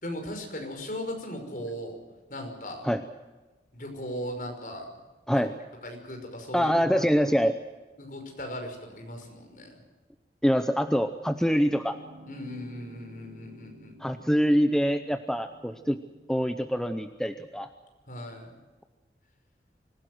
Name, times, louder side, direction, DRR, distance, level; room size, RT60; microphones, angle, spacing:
voice 1, 0.0-2.0 2.3-2.8 3.7-5.0 5.3-5.4 5.8-7.0 8.0-9.8 12.3-14.2 18.1-18.6, equal, 50° left, 3 dB, 5.7 m, -38 dB
voice 2, 6.5-7.6 10.4-12.0 14.0-16.0 16.3-17.7, equal, 5° left, 8 dB, 0.7 m, -25 dB
sound 1, 11.7-17.1, right 1 dB, 65° right, 1.7 m, -52 dB
25.5 x 16.5 x 7.9 m, 1.2 s
head